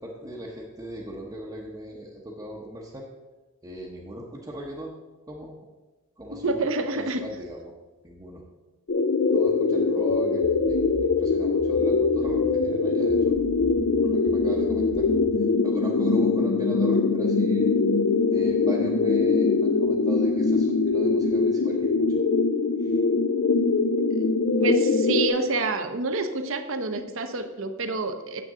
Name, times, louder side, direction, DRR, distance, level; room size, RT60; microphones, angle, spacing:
voice 1, 0.0-3.1 3.6-5.0 5.3-5.6 6.2-6.6 6.9-7.7 8.0-8.4 9.3-13.2 14.0-15.1 15.6-17.7 18.3-22.2 22.8-23.0, equal, 15° right, -4 dB, 0.8 m, -38 dB
voice 2, 6.3-7.2 24.1-28.4, right 2 dB, 60° right, 7 dB, 0.8 m, -28 dB
sound 1, 8.9-25.3, left 4 dB, 55° left, 0.5 m, -22 dB
sound 2, 10.1-15.5, equal, 25° left, 1.4 m, -42 dB
9.3 x 7.3 x 3.7 m, 1.2 s
head